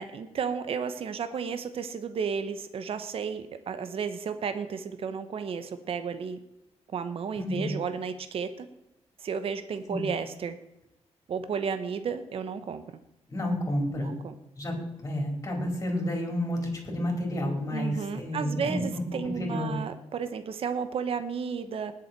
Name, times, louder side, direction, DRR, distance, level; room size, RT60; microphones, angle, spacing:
voice 1, 0.0-6.4 6.9-8.7 9.2-10.6 11.3-12.8 14.0-14.4 17.7-21.9, right 6 dB, 55° right, 10 dB, 1.0 m, -33 dB
voice 2, 7.4-7.7 9.9-10.1 13.3-14.1 14.6-14.7 15.0-16.6 16.8-19.8, left 1 dB, 25° left, 1 dB, 4.7 m, -30 dB
19.5 x 7.1 x 4.6 m, 0.88 s
wide cardioid pair, 135°, 11 cm